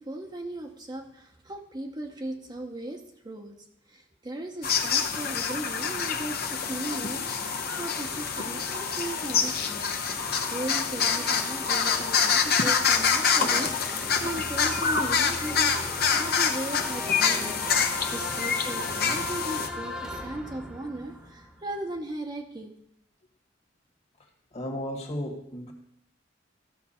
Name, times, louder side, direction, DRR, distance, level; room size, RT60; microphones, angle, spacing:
voice 1, 0.0-3.6 3.9-10.2 10.5-15.7 16.1-22.7, right 1 dB, 25° right, 3 dB, 0.8 m, -37 dB
sound 1, 4.6-19.7, left 6 dB, 55° left, 0.8 m, -26 dB
sound 2, 5.3-22.0, left 1 dB, 5° right, 1.1 m, -40 dB
voice 2, 24.5-25.7, equal, 35° left, 3 dB, 1.6 m, -34 dB
14.0 x 5.9 x 4.3 m, 0.77 s
head